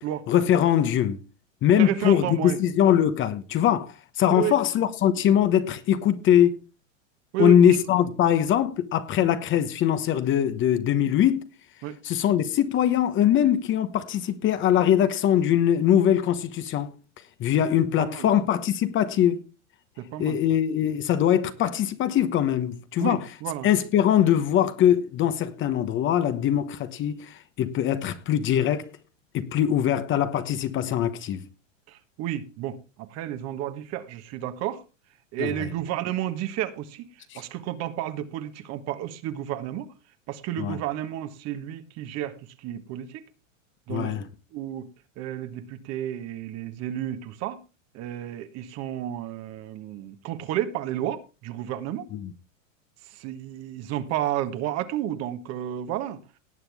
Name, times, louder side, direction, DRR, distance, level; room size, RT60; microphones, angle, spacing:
voice 1, 0.3-1.2 1.6-6.6 7.4-11.5 12.0-16.9 17.4-19.4 20.2-23.2 23.6-28.9 29.3-31.4 35.4-35.7 37.3-37.4 40.6-40.8 43.9-44.2 52.1-52.3, left 10 dB, 30° left, 1.2 m, -22 dB
voice 2, 1.7-2.6 4.3-4.6 7.3-7.8 11.8-12.0 18.0-18.3 20.0-20.4 23.0-23.7 31.9-34.8 35.3-37.1 37.3-39.9 40.3-43.2 43.9-44.9 45.2-47.6 47.9-52.1 53.1-56.2, right 12 dB, 40° right, 1.6 m, -31 dB
18.5 x 7.9 x 3.5 m
hypercardioid pair, 125°, 39 cm